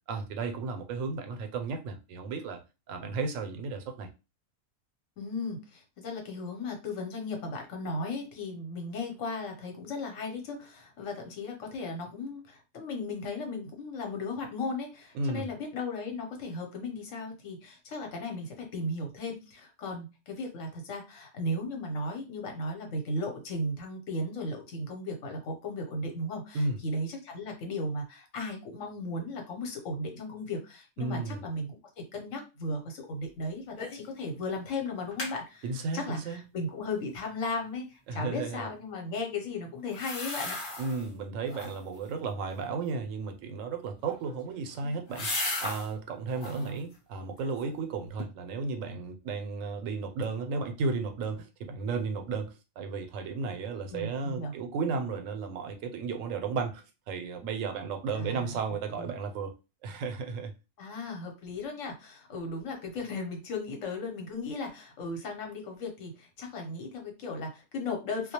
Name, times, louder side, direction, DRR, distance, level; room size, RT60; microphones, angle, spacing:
voice 1, 0.1-2.6 2.9-4.1 15.1-15.5 26.5-26.8 31.0-31.5 35.6-36.4 38.1-38.7 40.8-45.3 45.6-59.5 59.8-60.5, right 4 dB, 90° right, 1.0 m, -34 dB
voice 2, 5.2-31.8 32.1-35.7 35.9-40.6 46.5-46.8 53.9-54.5 58.1-58.6 59.0-59.1 60.8-68.3, left 2 dB, 75° left, 1.1 m, -36 dB
sound 1, 33.8-34.1 34.4-34.5 34.9-35.4 39.9-41.1 41.4-42.0 43.9-45.9 46.3-46.7 47.2-47.8 48.2-48.3, left 2 dB, 50° left, 0.9 m, -36 dB
2.3 x 2.1 x 2.8 m
omnidirectional pair, 1.3 m